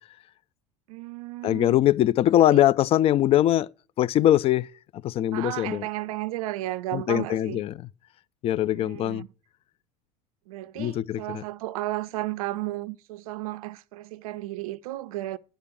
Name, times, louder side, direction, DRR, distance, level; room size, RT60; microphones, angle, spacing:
voice 1, 0.9-1.8 2.3-2.6 5.3-7.6 8.7-9.3 10.5-15.4, right 16 dB, 65° right, 0.5 m, -34 dB
voice 2, 1.4-3.7 4.0-4.7 5.0-5.8 6.9-7.7 8.4-9.2 10.8-11.4, left 12 dB, 30° left, 0.3 m, -22 dB
10.0 x 5.0 x 6.0 m
figure-of-eight pair, 70°, 20 cm